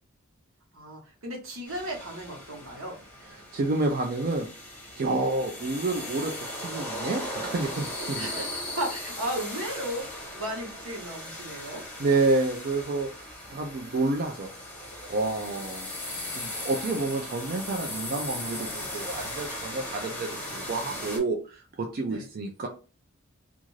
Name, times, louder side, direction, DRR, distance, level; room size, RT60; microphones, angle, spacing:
voice 1, 0.7-3.0 8.2-11.8 16.0-16.4 22.0-22.2, right 1 dB, 80° right, 0 dB, 1.1 m, -35 dB
sound 1, 1.7-21.2, left 1 dB, 5° left, 0.8 m, -38 dB
voice 2, 3.3-4.5 4.9-8.4 12.0-13.1 13.5-14.5 15.1-15.9 16.3-22.7, right 3 dB, 45° right, 2 dB, 0.4 m, -29 dB
2.5 x 2.3 x 3.1 m, 0.34 s
head